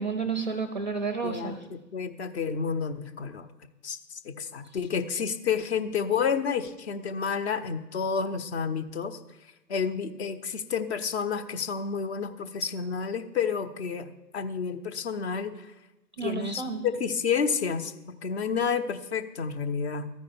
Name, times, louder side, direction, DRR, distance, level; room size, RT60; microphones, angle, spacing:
voice 1, 0.0-1.6 16.2-16.9, right 5 dB, 30° right, 9 dB, 0.4 m, -31 dB
voice 2, 1.2-3.5 3.8-9.2 9.7-15.7 16.2-20.1, left 6 dB, 45° left, 10 dB, 0.6 m, -30 dB
13.5 x 4.8 x 4.2 m, 0.99 s
figure-of-eight pair, 120°, 50 cm